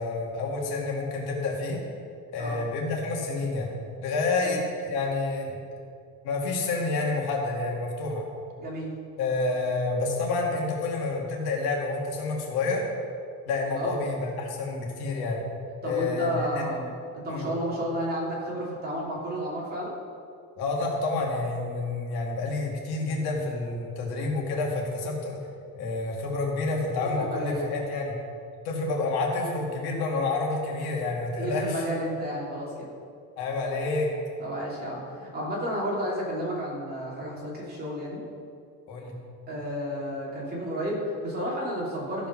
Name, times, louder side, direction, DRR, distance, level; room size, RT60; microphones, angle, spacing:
voice 1, 0.0-1.8 2.3-3.7 4.0-5.6 6.2-8.2 9.2-12.9 13.5-15.4 15.8-16.7 17.3-17.5 20.6-25.4 25.8-28.2 28.6-31.9 33.4-34.1 38.9-39.1, left 3 dB, 80° left, -1 dB, 2.4 m, -29 dB
voice 2, 8.6-8.9 13.7-14.0 15.8-16.9 17.1-19.9 27.0-27.7 31.4-32.9 34.4-38.2 39.5-42.3, equal, 25° right, -5 dB, 3.0 m, -32 dB
14.0 x 5.3 x 6.0 m, 2.4 s
cardioid pair, 155°, 37 cm